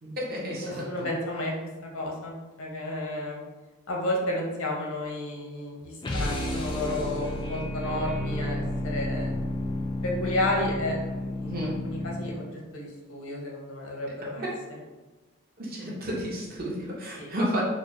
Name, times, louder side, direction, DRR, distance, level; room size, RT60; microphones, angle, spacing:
voice 1, 0.0-1.1 11.4-11.8 14.4-14.5 15.6-17.6, equal, 45° right, -5 dB, 0.9 m, -32 dB
voice 2, 0.5-1.5 1.9-3.4 3.9-9.3 10.0-14.8 15.8-15.9 17.2-17.3, left 1 dB, 80° left, -1 dB, 0.8 m, -32 dB
sound 1, 6.0-12.5, left 1 dB, 20° left, 0.3 m, -31 dB
4.0 x 2.0 x 3.1 m, 1.2 s
head